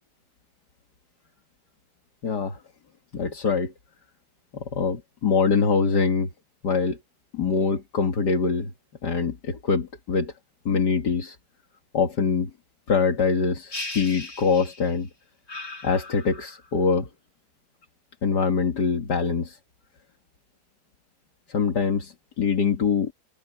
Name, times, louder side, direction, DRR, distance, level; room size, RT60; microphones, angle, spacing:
voice 1, 2.2-2.6 3.1-3.7 4.5-6.3 6.6-7.0 7.3-8.7 9.0-10.3 10.7-11.4 11.9-12.5 12.9-15.1 15.8-17.1 18.2-19.6 21.5-23.1, left 5 dB, 75° left, 2.5 m, -24 dB
sound 1, 13.7-15.0 15.5-16.7, left 2 dB, 60° left, 5.1 m, -38 dB
omnidirectional pair, 1.8 m